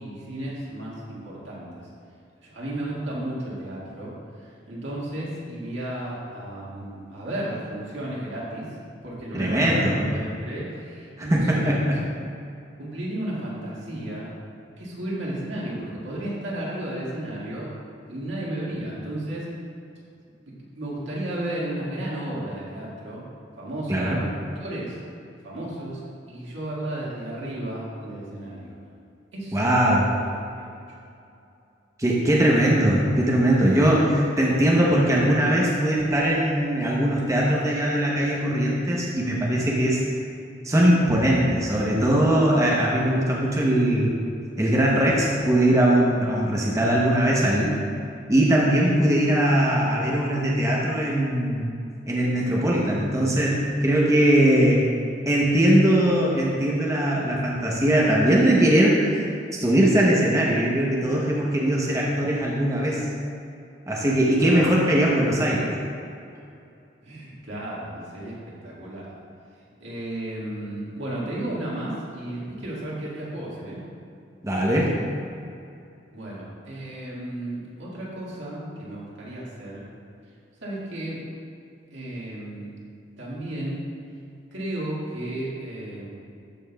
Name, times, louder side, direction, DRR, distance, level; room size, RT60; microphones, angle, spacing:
voice 1, 0.0-1.8 2.4-4.1 4.4-8.8 9.0-11.9 12.8-14.3 14.8-17.7 18.1-19.5 20.4-23.2 23.6-25.0 25.4-26.0 26.3-28.8 29.3-29.8 30.6-30.8 64.4-64.7 67.0-69.1 69.8-73.8 76.1-79.8 80.6-81.2 81.9-82.7 83.2-83.8 84.5-86.1, right 1 dB, 90° right, -6 dB, 1.8 m, -33 dB
voice 2, 9.3-10.0 11.2-12.0 23.9-24.2 29.5-30.0 32.0-40.0 40.6-44.2 44.6-47.8 48.3-51.7 52.1-54.8 55.3-59.2 59.6-63.1 63.9-65.7 74.4-74.9, right 1 dB, 15° right, -4 dB, 0.7 m, -20 dB
13.0 x 5.5 x 2.2 m, 2.5 s
head